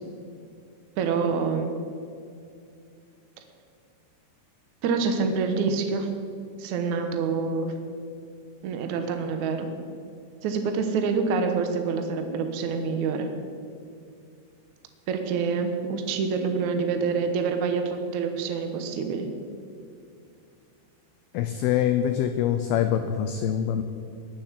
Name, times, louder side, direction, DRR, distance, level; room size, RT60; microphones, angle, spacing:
voice 1, 1.0-1.7 4.8-6.1 6.6-7.7 8.6-9.7 10.4-13.3 15.1-19.3, right 5 dB, 85° right, 6 dB, 1.7 m, -26 dB
voice 2, 21.3-23.8, left 10 dB, 85° left, 8 dB, 2.2 m, -24 dB
21.0 x 7.4 x 7.5 m, 2.4 s
omnidirectional pair, 5.3 m